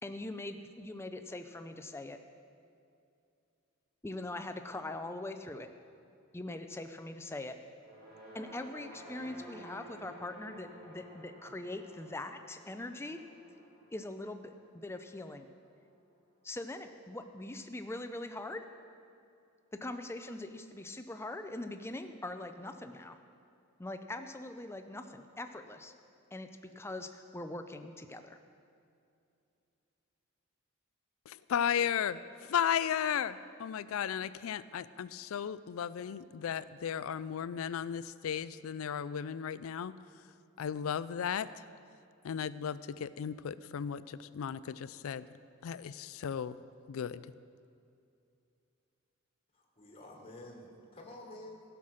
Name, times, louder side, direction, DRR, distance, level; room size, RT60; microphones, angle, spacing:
voice 1, 0.0-2.2 4.0-5.7 6.3-7.6 8.3-13.2 13.9-15.5 16.4-18.7 19.7-23.2 23.8-25.9 26.3-28.4, left 2 dB, 10° left, 8 dB, 0.5 m, -42 dB
sound 1, 7.7-16.1, right 1 dB, 45° right, 2.8 m, -53 dB
voice 2, 31.3-39.9 40.6-41.5 42.2-45.3 45.6-46.6 46.9-47.2, left 8 dB, 75° left, 16 dB, 0.4 m, -35 dB
voice 3, 49.5-51.6, left 1 dB, 25° left, -1 dB, 1.5 m, -50 dB
15.5 x 5.9 x 6.4 m, 2.6 s
head